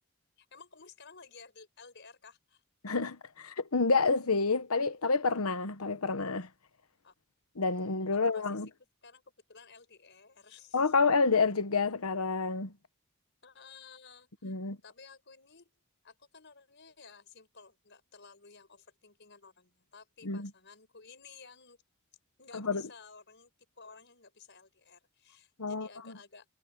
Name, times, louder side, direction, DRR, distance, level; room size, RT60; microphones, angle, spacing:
voice 1, 0.4-2.6 7.0-7.1 8.3-8.6 9.0-10.9 13.4-15.7 16.0-21.8 22.4-23.5 23.8-26.5, left 5 dB, 55° left, 5.8 m, -54 dB
voice 2, 2.8-6.5 7.6-8.7 10.7-12.7 14.4-14.8 20.2-20.5 22.5-22.8 25.6-26.1, left 4 dB, 90° left, 1.2 m, -29 dB
head